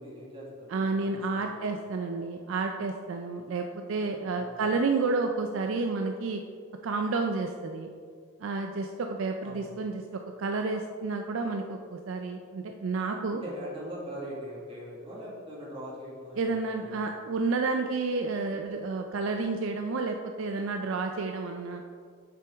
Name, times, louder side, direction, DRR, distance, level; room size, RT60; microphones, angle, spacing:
voice 1, 0.0-1.7 4.3-4.8 9.4-9.8 13.3-17.5, equal, 25° right, -6 dB, 1.7 m, -42 dB
voice 2, 0.7-6.4 6.8-7.9 8.4-13.4 16.4-21.8, right 3 dB, 65° right, 4 dB, 0.4 m, -30 dB
6.9 x 5.9 x 3.5 m, 2.2 s
head